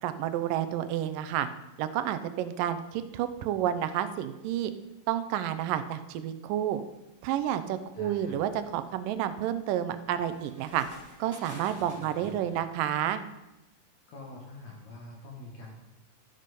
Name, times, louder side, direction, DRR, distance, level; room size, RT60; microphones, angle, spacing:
voice 1, 0.0-1.5 1.8-4.7 5.1-6.8 7.2-10.9 11.2-13.2, right 11 dB, 80° right, 11 dB, 2.3 m, -30 dB
sound 1, 7.2-7.3 7.9-12.5, equal, 5° left, 4.0 m, -50 dB
voice 2, 7.9-8.4 12.2-12.6 14.1-15.7, left 2 dB, 60° left, -2 dB, 3.0 m, -45 dB
13.0 x 7.6 x 5.3 m, 0.96 s
omnidirectional pair, 3.9 m